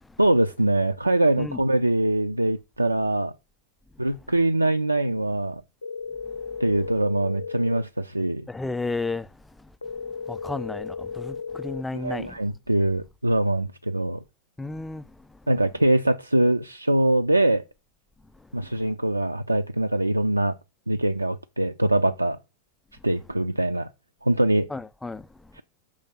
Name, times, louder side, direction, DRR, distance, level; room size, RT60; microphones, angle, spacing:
voice 1, 0.2-3.3 4.0-5.6 6.6-8.5 11.9-14.2 15.5-17.6 18.5-20.6 20.9-22.4 23.0-23.9 24.2-24.7 25.5-25.6, right 1 dB, 85° right, 0.3 m, -23 dB
sound 1, 5.8-7.8 9.8-11.8, left 5 dB, 85° left, 0.3 m, -35 dB
voice 2, 8.5-9.3 9.6-9.7 10.3-12.4 14.6-15.1 24.7-25.3, left 3 dB, 5° left, 0.4 m, -32 dB
6.2 x 3.4 x 5.6 m
figure-of-eight pair, 90°, 0 cm